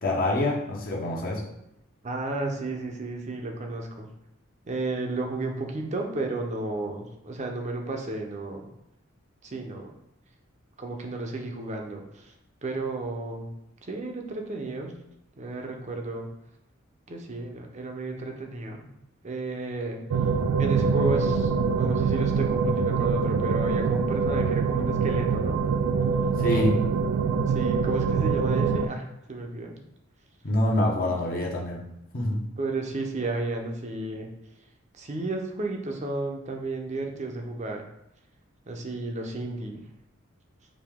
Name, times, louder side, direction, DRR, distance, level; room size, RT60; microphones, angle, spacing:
voice 1, 0.0-1.4 26.4-26.8 30.4-31.8 32.1-32.4, left 1 dB, 45° left, -2 dB, 0.7 m, -25 dB
voice 2, 2.0-4.1 4.7-8.7 9.4-9.9 10.8-12.3 12.6-13.5 13.8-15.0 15.4-16.3 17.1-18.9 19.2-20.0 20.6-25.6 27.5-29.8 31.1-31.4 32.6-34.3 34.9-37.8 38.7-39.8, right 2 dB, 35° right, 2 dB, 0.6 m, -32 dB
sound 1, 20.1-28.9, right 5 dB, 85° right, 0.3 m, -24 dB
4.9 x 2.7 x 3.5 m, 0.81 s
head